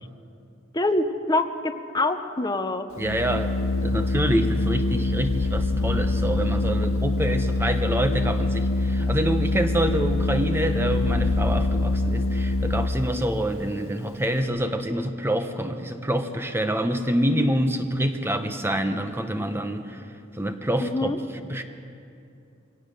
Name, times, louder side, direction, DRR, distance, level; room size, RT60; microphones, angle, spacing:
voice 1, 0.7-2.9 5.0-5.1 5.7-5.9 20.8-21.2, left 2 dB, 20° left, 9 dB, 0.9 m, -26 dB
Organ, 2.9-13.2, left 2 dB, 80° left, 0.7 m, -24 dB
voice 2, 3.0-3.5 3.8-20.0 20.4-21.1 21.4-21.6, right 1 dB, 10° right, 7 dB, 0.9 m, -26 dB
22.5 x 18.0 x 6.7 m, 2.6 s
head